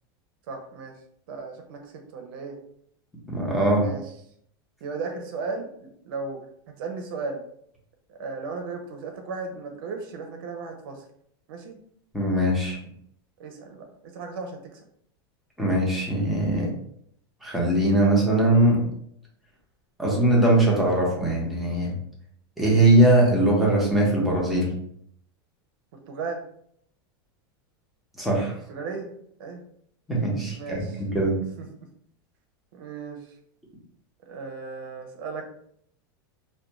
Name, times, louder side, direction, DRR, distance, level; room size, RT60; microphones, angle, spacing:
voice 1, 0.5-0.9 1.3-2.6 3.8-4.0 4.8-6.4 6.8-7.4 8.1-11.0 11.5-11.8 13.4-14.8 26.1-26.4 28.7-29.6 30.6-31.0 31.6-31.7 32.7-33.2 34.3-35.4, right 4 dB, 65° right, 3 dB, 0.5 m, -35 dB
voice 2, 3.3-3.9 12.1-12.8 15.6-16.7 17.4-18.8 20.0-21.9 22.6-24.7 28.2-28.5 30.1-31.3, right 1 dB, ahead, -4 dB, 0.8 m, -21 dB
2.4 x 2.2 x 3.0 m, 0.68 s
supercardioid pair, 140°, 12 cm